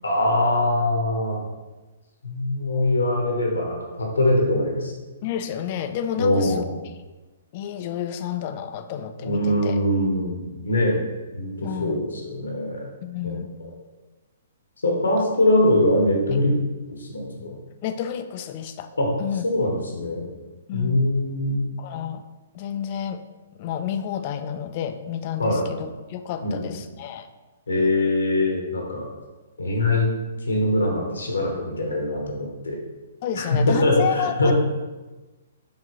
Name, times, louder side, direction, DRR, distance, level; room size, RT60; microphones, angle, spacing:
voice 1, 0.0-1.4 2.2-4.9 6.2-6.7 9.2-11.0 11.3-12.8 13.2-13.4 14.8-16.5 16.9-17.6 19.0-19.1 19.4-20.2 20.7-21.6 25.4-25.7 26.4-26.6 27.7-29.1 29.6-30.1 30.5-32.8 33.4-34.5, left 1 dB, 80° left, 0 dB, 0.9 m, -22 dB
voice 2, 5.2-6.6 7.5-9.8 11.6-12.0 13.0-13.5 17.8-18.9 19.2-19.5 20.7-21.0 21.8-22.2 22.5-23.2 23.6-27.3 33.2-34.5, left 9 dB, 40° left, 9 dB, 0.3 m, -30 dB
4.7 x 2.7 x 2.9 m, 1.2 s
hypercardioid pair, 125°, 0 cm